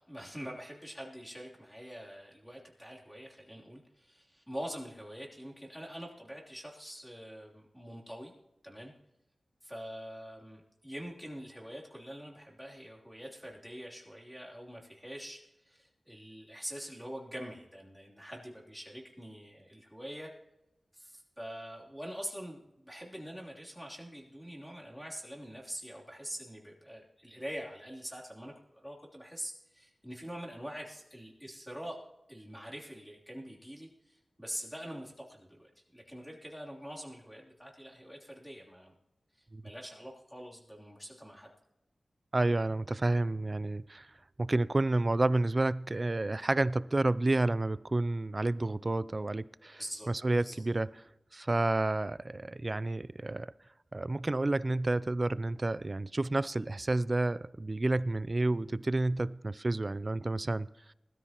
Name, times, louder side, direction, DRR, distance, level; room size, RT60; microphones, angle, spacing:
voice 1, 0.1-8.3 8.6-8.9 9.6-20.3 20.9-32.0 32.3-39.0 39.3-41.5 49.8-50.1 50.4-50.6, equal, ahead, 3.2 m, -45 dB
voice 2, 42.3-44.1 44.4-49.8 50.1-50.9 51.3-53.5 53.9-60.7, right 2 dB, 35° right, 0.4 m, -30 dB
20.0 x 13.5 x 3.0 m
wide cardioid pair, 65°, 0 cm